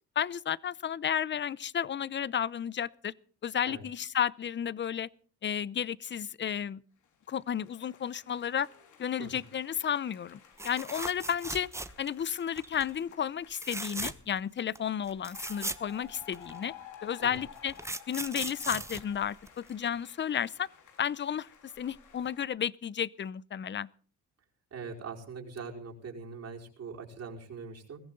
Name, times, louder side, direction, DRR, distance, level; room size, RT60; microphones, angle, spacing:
voice 1, 0.2-3.1 3.4-5.1 5.4-6.8 7.3-8.7 9.0-10.4 10.6-11.7 12.0-16.7 17.0-17.7 18.1-20.7 21.0-23.9, left 9 dB, 40° left, 0.7 m, -32 dB
sound 1, 7.0-14.4 15.1-22.4, left 8 dB, 80° left, 3.8 m, -54 dB
sound 2, 10.6-12.2 12.6-12.9 13.5-14.4 14.8-14.9 15.1-16.6 17.3-19.9 21.8-22.0 22.3-22.4, right 2 dB, 10° right, 1.2 m, -38 dB
voice 2, 24.7-28.0, right 5 dB, 60° right, 4.8 m, -42 dB
21.5 x 15.5 x 3.9 m
cardioid pair, 90°, 30 cm